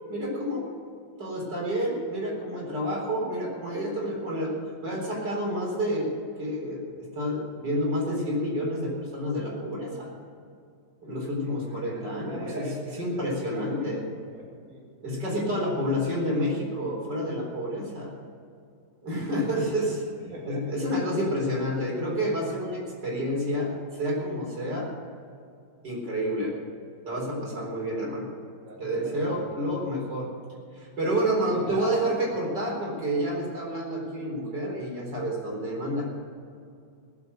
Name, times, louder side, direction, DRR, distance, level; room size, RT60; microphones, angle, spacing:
voice 1, 0.1-0.7 1.2-4.5 4.8-6.1 6.4-10.1 11.0-12.7 13.0-14.0 15.0-18.1 19.0-20.0 20.4-24.9 25.8-26.5 27.0-28.3 28.8-30.3 30.7-36.1, equal, 80° right, -2 dB, 4.7 m, -29 dB
voice 2, 11.5-13.2 13.5-14.9 19.4-19.6 20.3-20.6 20.9-21.1 27.5-27.9 28.7-29.5 31.5-32.0, right 1 dB, 50° right, -3 dB, 2.5 m, -42 dB
18.0 x 8.0 x 8.0 m, 2.4 s
omnidirectional pair, 1.8 m